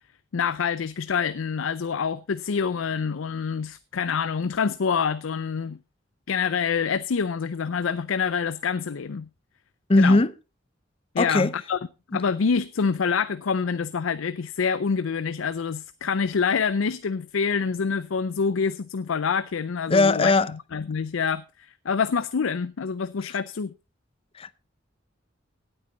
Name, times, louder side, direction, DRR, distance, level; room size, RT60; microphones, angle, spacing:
voice 1, 0.3-5.8 6.3-9.3 10.0-10.2 11.1-11.8 12.1-20.3 20.7-23.7, left 6 dB, 90° left, 0.5 m, -26 dB
voice 2, 9.9-10.3 11.2-11.5 19.9-20.5 24.3-24.5, left 2 dB, 30° left, 0.5 m, -19 dB
17.0 x 8.9 x 3.9 m
head